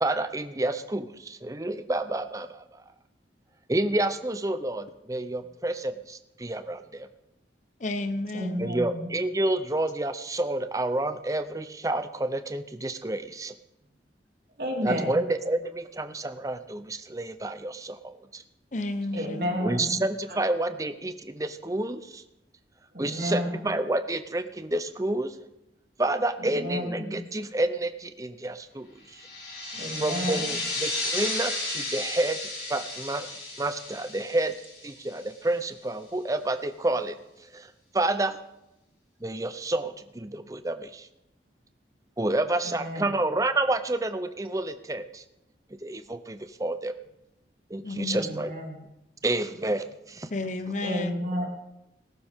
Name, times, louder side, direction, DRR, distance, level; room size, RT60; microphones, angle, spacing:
voice 1, 0.0-2.8 3.7-7.1 8.6-13.5 14.8-18.4 19.6-22.2 23.0-25.3 26.0-29.2 30.0-33.3 33.6-34.5 34.8-37.1 37.5-38.4 39.2-41.1 42.2-45.2 45.8-46.9 47.7-48.5 49.2-50.3, right 2 dB, 20° right, 10 dB, 0.6 m, -29 dB
voice 2, 7.8-8.7 18.7-19.6 47.8-48.4 50.3-51.2, left 2 dB, 45° left, 10 dB, 0.9 m, -32 dB
voice 3, 8.3-9.1 14.6-15.2 19.1-20.0 22.9-23.6 26.5-27.2 29.7-30.5 42.7-43.0 48.1-48.8 50.8-51.5, equal, 55° right, 0 dB, 2.8 m, -31 dB
sound 1, 29.1-35.5, left 2 dB, 60° left, 5.9 m, -33 dB
19.0 x 12.0 x 3.6 m, 0.89 s
head